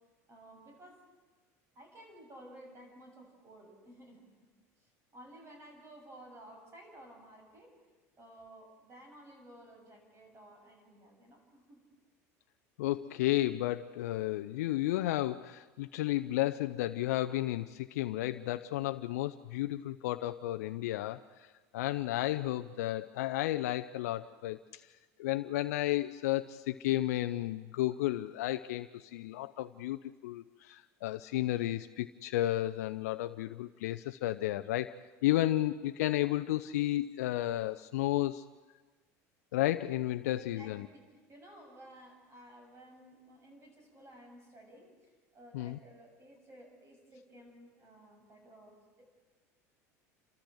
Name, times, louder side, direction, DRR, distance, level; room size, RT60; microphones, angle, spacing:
voice 1, 0.3-1.0 1.7-4.5 4.8-7.8 8.2-11.8 40.3-49.0, right 1 dB, 30° right, 2 dB, 7.4 m, -55 dB
voice 2, 12.8-21.5 21.7-24.8 25.2-34.9 35.2-38.4 39.5-40.9 45.5-45.8, left 15 dB, 80° left, 9 dB, 0.6 m, -32 dB
29.0 x 13.5 x 7.9 m, 1.3 s
hypercardioid pair, 90°, 9 cm